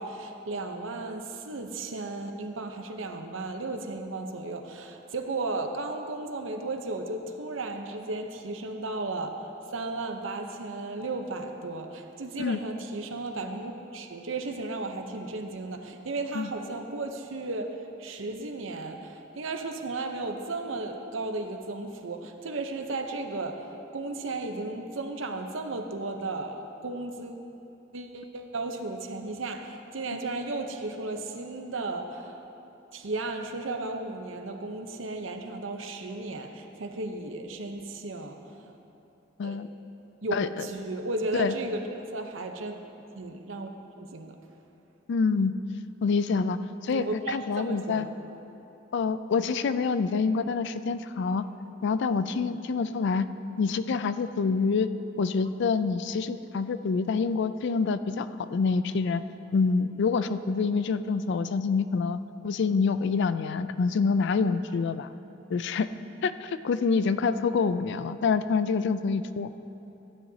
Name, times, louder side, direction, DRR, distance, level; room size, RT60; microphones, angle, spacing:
voice 1, 0.0-27.4 27.9-32.4 32.9-38.7 39.4-39.6 40.2-42.8 43.1-43.7 44.0-44.4 46.9-48.1, right 2 dB, 80° right, 5 dB, 0.8 m, -35 dB
voice 2, 40.3-40.7 41.4-41.5 45.1-45.6 46.0-48.1 48.9-51.4 51.8-53.3 53.6-54.9 55.2-59.2 59.5-65.1 65.5-65.9 66.2-69.5, left 5 dB, 60° left, 12 dB, 0.4 m, -26 dB
15.5 x 10.0 x 2.8 m, 2.9 s
head